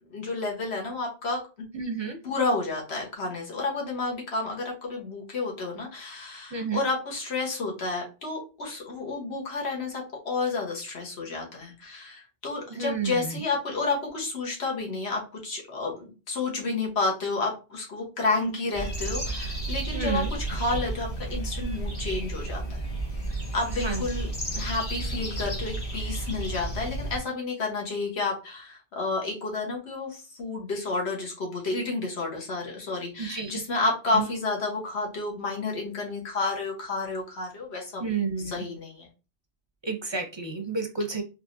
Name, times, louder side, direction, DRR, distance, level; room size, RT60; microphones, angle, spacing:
voice 1, 0.1-1.4 2.2-20.2 20.5-22.9 23.2-38.0 38.5-39.1, left 3 dB, 80° left, -1 dB, 1.4 m, -30 dB
voice 2, 1.7-2.2 6.5-6.8 12.7-13.4 19.9-20.3 23.7-24.0 33.2-33.6 34.1-34.3 38.0-38.6 39.8-41.2, right 4 dB, 35° right, 4 dB, 0.5 m, -31 dB
sound 1, 18.7-27.2, right 2 dB, 40° left, 1.5 m, -32 dB
3.6 x 3.0 x 2.6 m, 0.31 s
omnidirectional pair, 1.1 m